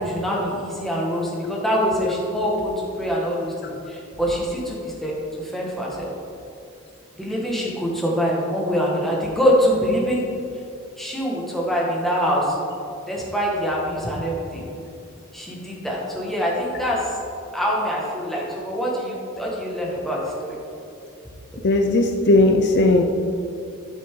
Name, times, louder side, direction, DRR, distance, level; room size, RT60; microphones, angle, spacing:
voice 1, 0.0-6.1 7.2-10.2 11.0-12.5 13.1-14.7 15.3-17.1 17.5-20.6, equal, ahead, -4 dB, 1.7 m, -24 dB
voice 2, 21.6-23.0, left 2 dB, 50° left, 3 dB, 0.6 m, -17 dB
12.5 x 6.7 x 3.8 m, 2.6 s
head